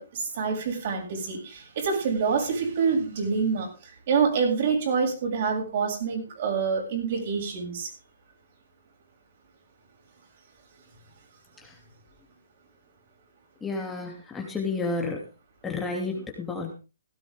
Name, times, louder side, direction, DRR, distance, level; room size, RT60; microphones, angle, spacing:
voice 1, 0.0-7.9, right 5 dB, 50° right, 2 dB, 7.3 m, -26 dB
voice 2, 13.6-15.2 15.6-16.7, left 3 dB, 10° left, 1 dB, 2.8 m, -31 dB
17.0 x 12.5 x 3.7 m, 0.31 s
hypercardioid pair, 140°, 0 cm